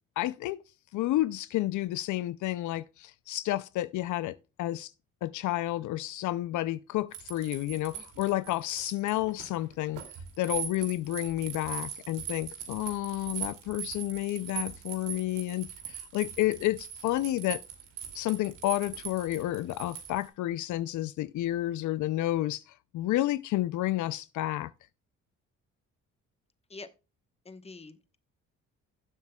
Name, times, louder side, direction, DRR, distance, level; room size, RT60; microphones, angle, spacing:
voice 1, 0.2-0.6 0.9-4.9 5.2-10.0 10.4-17.6 18.1-24.7, left 15 dB, 75° left, 0.5 m, -30 dB
sound 1, 7.1-20.3, right 9 dB, 90° right, 2.5 m, -40 dB
voice 2, 27.4-28.2, left 3 dB, 20° left, 1.0 m, -46 dB
16.5 x 7.4 x 2.2 m
cardioid pair, 90°, 30 cm